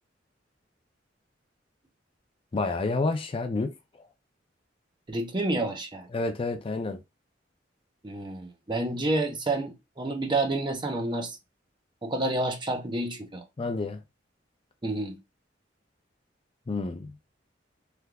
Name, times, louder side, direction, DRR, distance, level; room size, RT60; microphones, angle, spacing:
voice 1, 2.5-3.7 6.1-7.0 13.6-14.0 16.7-17.1, left 3 dB, 30° left, 0.4 m, -29 dB
voice 2, 5.1-6.1 8.0-11.4 12.0-13.4 14.8-15.2, right 2 dB, 25° right, 0.7 m, -29 dB
3.3 x 2.7 x 2.3 m
head